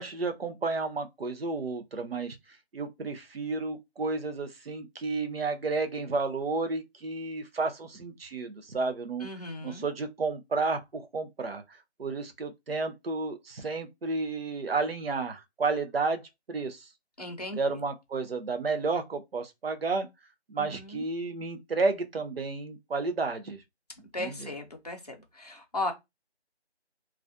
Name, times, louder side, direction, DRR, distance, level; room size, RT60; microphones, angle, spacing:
voice 1, 0.0-2.4 2.7-9.3 9.6-11.6 12.0-16.2 16.5-16.9 17.6-20.1 20.5-23.6 24.2-24.5, right 3 dB, 60° right, 0.6 m, -31 dB
voice 2, 9.2-9.8 17.2-17.8 20.6-21.0 24.1-25.9, left 2 dB, 40° left, 0.5 m, -36 dB
2.3 x 2.1 x 2.5 m
figure-of-eight pair, 165°, 33 cm